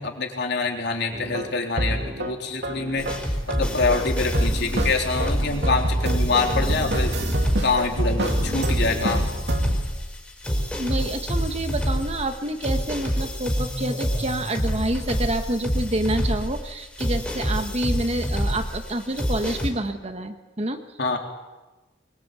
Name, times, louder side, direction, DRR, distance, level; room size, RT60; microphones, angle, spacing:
voice 1, 0.0-3.1 3.5-7.1 7.6-9.3 21.0-21.2, left 3 dB, 60° left, 2 dB, 3.6 m, -25 dB
sound 1, 1.1-2.4 2.6-4.1 4.3-9.8, right 1 dB, 60° right, 2.8 m, -27 dB
sound 2, 3.0-19.7, equal, 5° left, 4.3 m, -27 dB
voice 2, 10.8-20.8, right 1 dB, 35° right, 7 dB, 1.4 m, -28 dB
22.5 x 22.5 x 8.4 m, 1.1 s
head